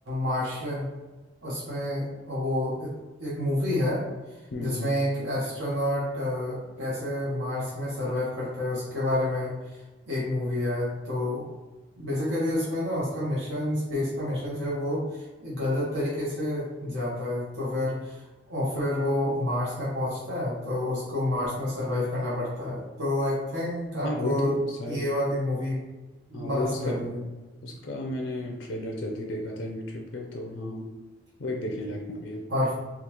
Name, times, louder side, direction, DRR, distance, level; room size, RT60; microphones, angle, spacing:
voice 1, 0.1-0.9 1.4-2.9 3.2-4.0 4.6-9.5 10.1-11.4 12.0-18.2 18.5-24.6 24.8-25.8 26.3-27.2 32.5-32.7, left 1 dB, 85° right, -7 dB, 1.0 m, -29 dB
voice 2, 4.5-4.9 24.0-25.1 26.3-27.0 27.6-30.9 31.4-32.4, left 1 dB, 80° left, 1 dB, 0.5 m, -33 dB
3.6 x 2.4 x 2.9 m, 1.2 s
head